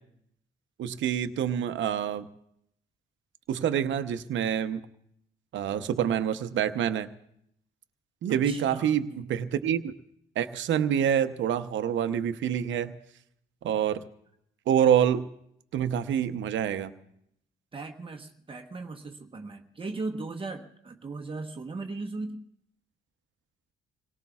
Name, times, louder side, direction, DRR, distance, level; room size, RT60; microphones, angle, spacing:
voice 1, 0.8-2.3 3.5-4.8 5.5-7.1 8.2-9.9 10.4-13.0 13.6-14.0 14.7-15.3 15.7-16.9, right 9 dB, 70° right, 10 dB, 0.8 m, -26 dB
voice 2, 8.3-9.3 17.7-22.4, right 3 dB, 25° right, 3 dB, 1.1 m, -38 dB
27.5 x 18.0 x 2.4 m, 0.74 s
cardioid pair, 90°, 20 cm